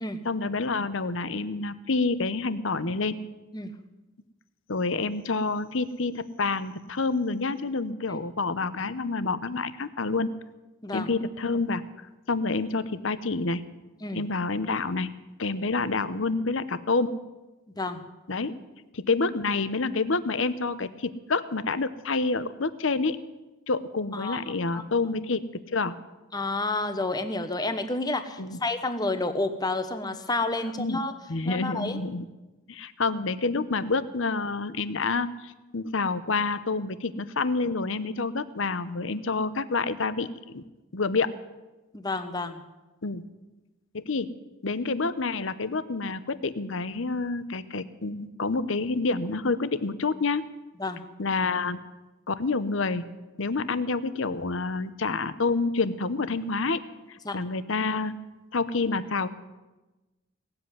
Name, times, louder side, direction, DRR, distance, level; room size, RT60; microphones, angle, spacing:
voice 1, 0.2-3.2 4.7-10.3 10.9-11.8 12.3-13.6 14.1-15.1 15.4-17.1 18.3-18.5 18.9-23.2 23.7-25.4 25.7-25.9 28.4-28.6 30.8-31.0 31.3-32.2 32.7-40.6 40.9-41.3 43.0-43.2 43.9-44.3 44.6-50.5 51.2-51.8 52.3-53.0 53.4-56.8 57.1-58.1 58.5-59.3, left 3 dB, 65° left, 14 dB, 0.8 m, -28 dB
voice 2, 10.8-11.1 14.0-14.2 17.8-18.0 24.1-24.4 24.6-24.8 26.3-31.1 31.4-32.0 41.9-42.6 50.8-51.0 57.2-57.4, left 2 dB, 20° left, 9 dB, 1.0 m, -30 dB
18.0 x 7.9 x 9.7 m, 1.1 s
head